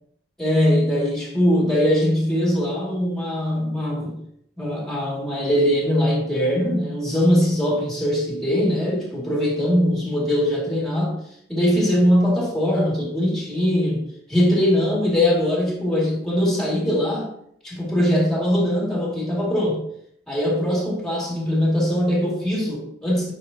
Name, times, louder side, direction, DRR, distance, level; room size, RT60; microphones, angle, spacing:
voice 1, 0.4-4.2 4.6-11.2 11.5-17.3 17.6-19.8 20.3-23.3, equal, 5° left, -4 dB, 2.4 m, -21 dB
9.8 x 5.1 x 2.9 m, 0.71 s
head